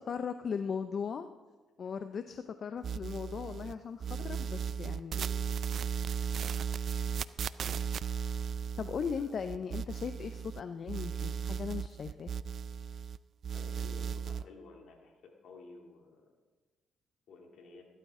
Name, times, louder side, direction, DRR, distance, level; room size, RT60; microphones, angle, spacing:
voice 1, 0.1-1.3 1.8-5.2 8.8-12.3, left 6 dB, 50° left, 9 dB, 0.5 m, -38 dB
sound 1, 2.8-3.7 4.0-10.6 10.9-13.2 13.4-14.4, right 7 dB, 60° right, 0.4 m, -36 dB
voice 2, 13.5-15.2 15.4-16.1 17.3-17.8, left 4 dB, 70° left, 1 dB, 2.6 m, -52 dB
15.0 x 13.0 x 3.7 m, 1.3 s
cardioid pair, 90°, 0 cm